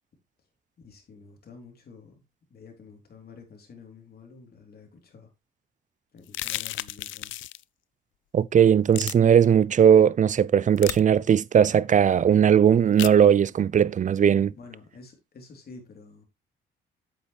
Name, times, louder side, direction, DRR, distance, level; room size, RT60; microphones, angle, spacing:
voice 1, 0.8-2.2 2.5-5.3 6.1-7.3 14.5-16.3, left 4 dB, 50° left, 3.6 m, -49 dB
sound 1, 6.3-7.6 8.9-9.1 10.8-11.0 13.0-13.2, left 15 dB, 75° left, 0.5 m, -33 dB
voice 2, 8.3-14.5, right 8 dB, 40° right, 0.5 m, -18 dB
8.5 x 7.9 x 3.3 m
cardioid pair, 90°, 20 cm